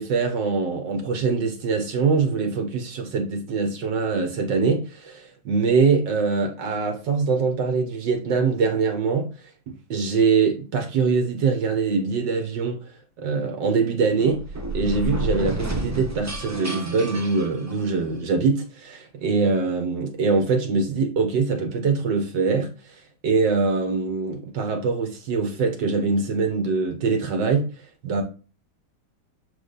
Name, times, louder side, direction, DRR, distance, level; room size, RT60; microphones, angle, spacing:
voice 1, 0.0-9.3 9.7-12.8 13.2-14.4 14.7-22.7 23.2-27.7 28.0-28.2, right 4 dB, 60° right, 1.7 m, -23 dB
sound 1, 14.2-18.2, right 2 dB, 25° right, 0.4 m, -30 dB
7.2 x 3.3 x 4.0 m
omnidirectional pair, 2.3 m